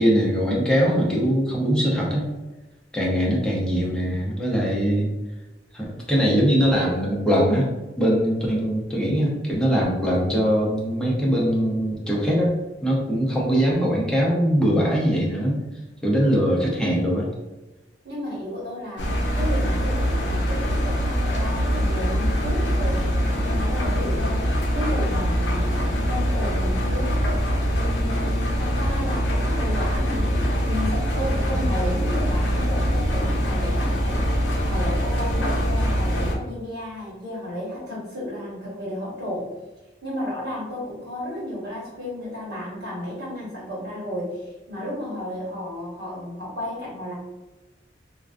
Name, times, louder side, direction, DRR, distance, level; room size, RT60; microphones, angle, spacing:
voice 1, 0.0-2.2 2.9-5.1 5.7-7.7 8.0-12.6 12.8-15.6 16.0-17.3 31.5-31.7, equal, 5° left, -4 dB, 0.5 m, -21 dB
voice 2, 18.0-19.1 19.3-27.2 27.7-30.2 30.6-39.5 40.0-47.1, left 1 dB, 65° right, -6 dB, 1.1 m, -33 dB
Engine, 19.0-36.3, equal, 80° left, 0.5 m, -23 dB
2.3 x 2.3 x 2.4 m, 1.1 s
head